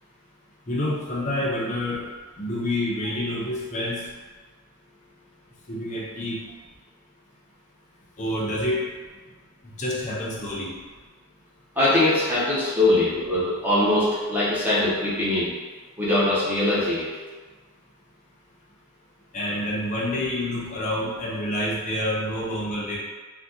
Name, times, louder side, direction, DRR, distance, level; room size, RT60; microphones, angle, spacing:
voice 1, 0.7-2.0 2.4-4.1 5.7-6.4 8.2-8.8 9.6-10.7 12.8-12.9 19.3-23.0, left 1 dB, 35° left, -4 dB, 0.6 m, -28 dB
voice 2, 11.8-15.5 16.0-17.1, left 1 dB, 10° right, -9 dB, 0.6 m, -22 dB
2.7 x 2.1 x 3.5 m, 1.4 s
head